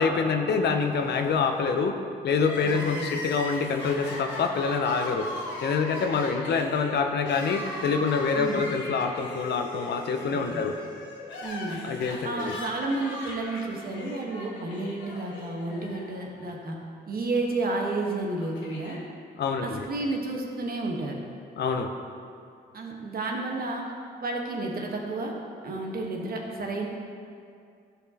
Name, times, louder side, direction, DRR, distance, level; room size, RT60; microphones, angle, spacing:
voice 1, 0.0-2.0 2.2-5.3 5.6-10.7 11.8-12.6 19.4-19.8 21.6-21.9, left 5 dB, 65° left, 6 dB, 0.6 m, -26 dB
Crying sobbing, 2.3-16.5 16.8-16.9 17.9-19.0, left 1 dB, 80° left, 1.1 m, -39 dB
voice 2, 2.6-3.1 8.3-8.6 10.3-10.6 11.4-11.8 12.2-16.8 17.1-19.0 19.6-21.2 22.7-23.8 24.2-25.3 25.6-26.9, right 2 dB, 55° right, 0 dB, 1.2 m, -31 dB
11.5 x 4.2 x 2.8 m, 2.3 s
supercardioid pair, 65°, 19 cm